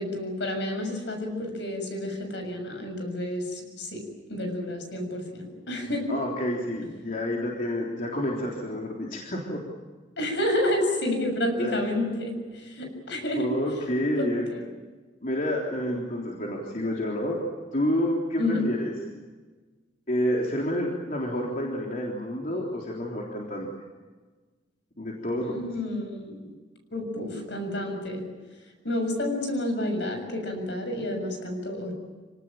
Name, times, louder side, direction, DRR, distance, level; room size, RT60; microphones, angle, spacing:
voice 1, 0.0-4.0 4.3-6.0 10.2-13.5 14.2-14.7 18.4-18.6 25.4-26.5 26.9-28.2 28.8-31.9, left 1 dB, 70° left, 5 dB, 6.9 m, -30 dB
voice 2, 6.1-9.6 11.6-11.8 13.3-14.5 15.2-17.4 17.7-18.9 20.1-23.7 25.0-25.7, equal, 45° left, -2 dB, 3.6 m, -29 dB
27.0 x 18.5 x 9.0 m, 1.3 s
head